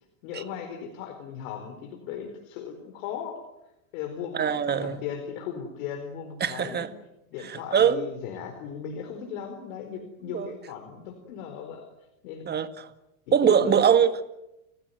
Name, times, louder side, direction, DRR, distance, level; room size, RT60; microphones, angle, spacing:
voice 1, 0.2-3.4 3.9-6.8 7.3-11.9 12.2-12.5 13.3-13.9, left 8 dB, 65° left, 4.4 m, -37 dB
voice 2, 4.3-5.0 6.4-6.9 7.4-8.1 10.3-10.5 12.5-12.9 13.3-14.2, right 8 dB, 25° right, 1.8 m, -23 dB
29.5 x 16.0 x 9.3 m
supercardioid pair, 125°, 43 cm